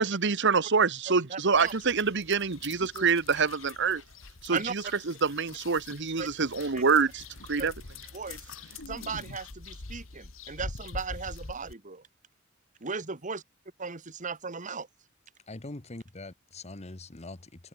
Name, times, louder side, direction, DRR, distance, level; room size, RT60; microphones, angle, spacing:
voice 1, 0.0-4.0 4.4-7.2 7.5-7.7, right 5 dB, 60° right, 1.2 m, -26 dB
voice 2, 1.3-1.7 2.9-3.1 4.5-4.7 6.2-6.3 6.7-6.8 7.6-7.7 8.1-8.5 8.9-12.0 12.8-13.4 13.8-14.9, right 5 dB, 35° right, 1.5 m, -36 dB
sound 1, 1.5-11.7, left 3 dB, 70° left, 1.7 m, -44 dB
voice 3, 15.5-17.7, left 2 dB, 30° left, 1.3 m, -43 dB
open air
head